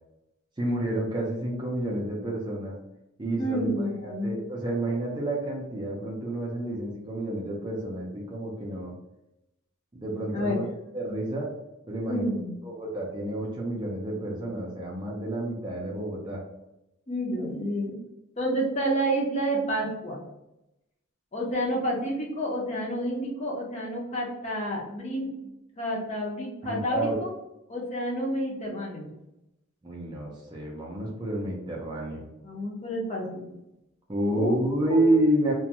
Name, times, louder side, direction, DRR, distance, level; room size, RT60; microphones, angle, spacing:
voice 1, 0.6-2.7 3.2-8.9 9.9-10.7 10.9-11.5 11.9-12.3 12.6-16.4 26.6-27.1 29.8-32.2 34.1-35.5, right 1 dB, 20° right, -3 dB, 0.4 m, -29 dB
voice 2, 3.4-4.3 10.3-10.6 12.0-12.6 17.1-17.9 18.4-20.2 21.3-25.3 25.8-27.3 27.7-29.1 32.4-33.4 34.3-34.5 34.9-35.1, equal, 30° left, -2 dB, 0.5 m, -29 dB
2.5 x 2.2 x 2.8 m, 0.90 s
head